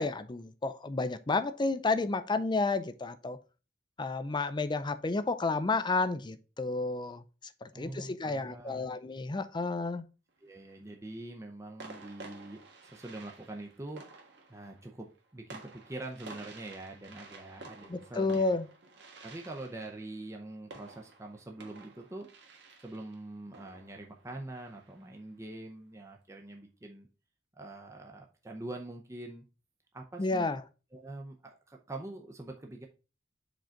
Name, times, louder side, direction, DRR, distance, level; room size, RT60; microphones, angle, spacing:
voice 1, 0.0-3.4 4.0-7.2 7.6-10.0 17.9-18.7 30.2-30.6, left 3 dB, 25° left, 0.5 m, -31 dB
voice 2, 7.7-9.0 10.4-14.2 14.5-18.5 19.2-22.3 22.8-27.1 27.6-29.4 29.9-30.5 30.9-32.9, right 2 dB, 15° right, 0.7 m, -44 dB
sound 1, 10.3-10.9 11.8-25.2, right 3 dB, 65° right, 1.4 m, -52 dB
5.1 x 3.9 x 5.7 m
head